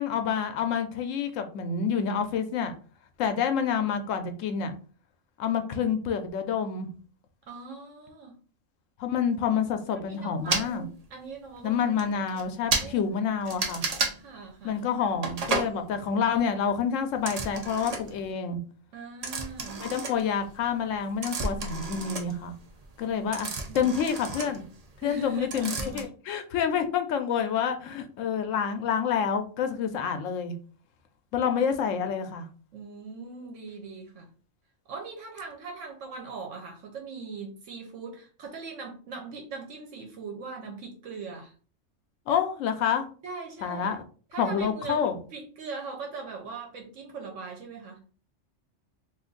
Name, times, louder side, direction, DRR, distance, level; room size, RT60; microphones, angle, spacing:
voice 1, 0.0-2.7 3.2-4.7 5.4-6.9 9.0-10.8 11.6-13.8 14.6-18.6 19.8-22.5 23.0-23.5 23.7-24.6 25.0-30.5 31.3-32.4 42.3-43.1 43.6-44.0 44.4-45.2, left 7 dB, 90° left, 7 dB, 1.0 m, -28 dB
voice 2, 7.5-8.4 9.9-12.0 12.8-13.1 13.5-13.7 14.2-14.8 18.9-19.9 23.1-23.4 23.7-24.6 25.0-26.1 32.7-34.3 34.9-41.5 43.2-44.0 44.3-48.0, right 4 dB, 75° right, 1 dB, 1.0 m, -41 dB
sound 1, 10.5-10.7 11.5-11.6 12.0-12.1 12.3-12.4 12.7-12.9 13.5-14.2 15.2-15.7 17.2-18.2 19.2-20.6 20.9-25.2 25.5-26.0, right 3 dB, 55° right, 0.4 m, -31 dB
2.6 x 2.5 x 3.7 m, 0.40 s
omnidirectional pair, 1.3 m